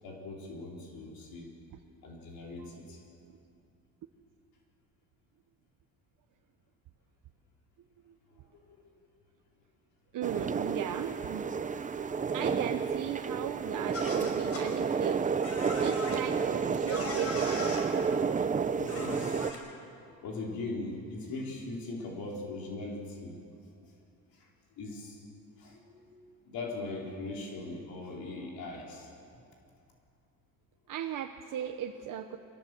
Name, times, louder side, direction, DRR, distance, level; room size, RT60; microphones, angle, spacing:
voice 1, 0.0-1.5 2.0-3.0 8.7-8.8 18.3-18.4 18.8-23.4 24.3-24.5 24.8-25.2 25.6-29.1, left 2 dB, 75° left, -1 dB, 4.3 m, -40 dB
voice 2, 2.6-3.0 3.3-3.4 10.1-11.5 12.3-17.9 30.9-32.4, right 10 dB, 60° right, 5 dB, 1.0 m, -37 dB
sound 1, 10.2-19.5, right 6 dB, 20° right, 0.6 m, -31 dB
sound 2, 13.9-14.6 15.4-16.2 16.9-17.8 18.9-19.6, left 1 dB, 40° left, 5.1 m, -38 dB
23.0 x 19.0 x 7.8 m, 2.6 s
cardioid pair, 135°, 35 cm